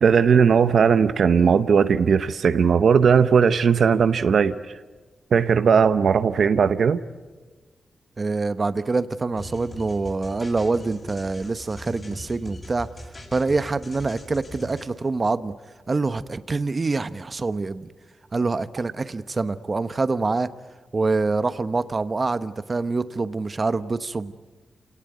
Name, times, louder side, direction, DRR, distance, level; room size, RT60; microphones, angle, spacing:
voice 1, 0.0-4.6 5.3-7.0, right 6 dB, 75° right, 11 dB, 0.9 m, -18 dB
voice 2, 8.2-12.9 13.3-15.5 15.9-17.9 18.3-20.5 20.9-24.3, right 3 dB, 40° right, 13 dB, 1.0 m, -25 dB
sound 1, 9.4-14.9, left 1 dB, 35° left, 7.7 m, -40 dB
28.0 x 18.5 x 9.5 m, 1.3 s
cardioid pair, 75°, 0 cm